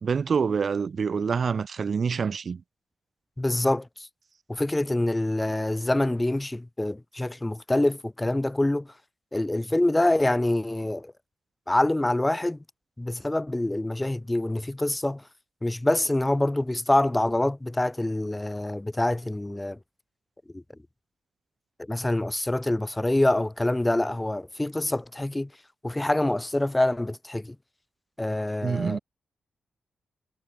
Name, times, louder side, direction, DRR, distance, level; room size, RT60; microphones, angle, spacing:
voice 1, 0.0-2.6 28.6-29.0, right 6 dB, 50° right, 1.0 m, -26 dB
voice 2, 3.4-4.1 4.5-8.9 9.3-11.1 11.7-12.6 13.0-15.2 15.6-19.8 20.5-20.6 21.9-25.5 25.8-27.6 28.2-29.0, left 1 dB, 10° left, 0.6 m, -25 dB
cardioid pair, 110°, 0 cm